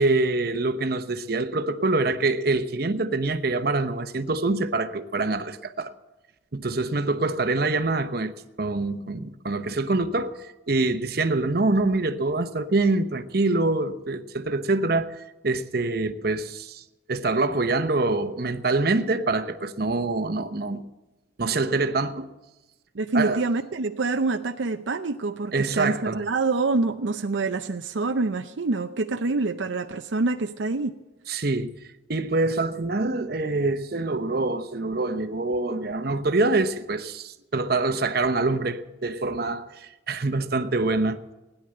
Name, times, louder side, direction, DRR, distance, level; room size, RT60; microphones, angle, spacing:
voice 1, 0.0-5.9 6.5-8.3 8.6-10.4 10.7-16.8 17.1-20.8 21.4-22.3 23.1-23.4 25.5-26.2 31.3-31.7 32.1-41.3, right 3 dB, 55° right, 0.9 m, -25 dB
voice 2, 22.9-30.9, right 3 dB, 75° right, 0.6 m, -26 dB
17.5 x 10.0 x 7.7 m
head